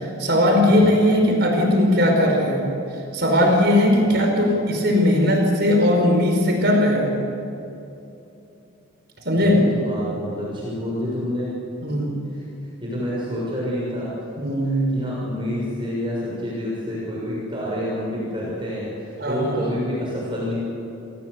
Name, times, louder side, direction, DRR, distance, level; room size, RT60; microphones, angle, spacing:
voice 1, 0.2-2.7 3.1-7.2 9.3-9.6 11.8-12.1 14.4-14.9 19.2-19.6, left 1 dB, 50° right, 2 dB, 5.3 m, -18 dB
voice 2, 9.4-11.5 12.3-14.1 14.6-20.5, equal, 25° right, -6 dB, 6.7 m, -28 dB
30.0 x 17.5 x 8.3 m, 2.8 s
head